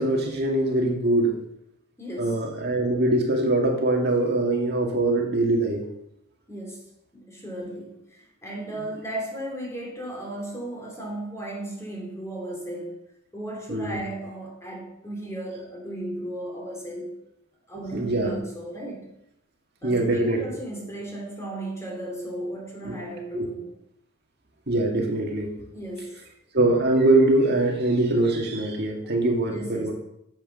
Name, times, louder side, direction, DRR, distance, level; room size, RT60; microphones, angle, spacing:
voice 1, 0.0-1.4 2.2-5.9 13.7-14.0 17.9-18.3 19.8-20.4 22.9-23.0 23.3-23.5 24.7-25.5 26.5-29.9, right 2 dB, 50° right, 1 dB, 2.0 m, -23 dB
voice 2, 2.0-2.4 6.5-13.0 13.3-17.1 17.7-19.1 19.8-23.7 25.7-26.2 29.4-29.9, right 1 dB, 15° left, -1 dB, 3.2 m, -35 dB
10.5 x 7.5 x 6.6 m, 0.80 s
head